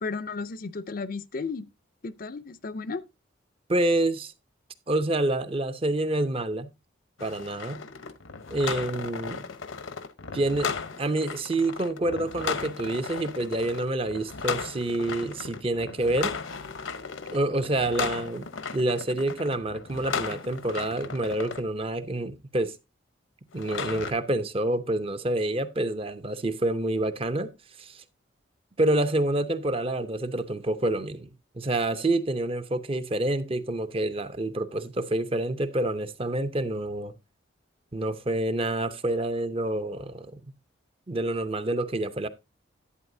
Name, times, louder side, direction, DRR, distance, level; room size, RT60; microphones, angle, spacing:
voice 1, 0.0-1.7 2.0-3.0, left 4 dB, 45° left, 0.5 m, -34 dB
voice 2, 3.7-4.3 4.9-6.7 7.2-7.8 8.5-9.5 10.3-10.7 11.0-16.4 17.3-22.8 23.5-27.5 27.8-28.0 28.8-31.3 31.5-37.1 37.9-40.4 41.1-42.3, right 1 dB, 30° right, 0.6 m, -27 dB
sound 1, 7.2-21.6 23.5-24.1, left 5 dB, 80° left, 0.9 m, -35 dB
11.0 x 8.8 x 2.7 m
head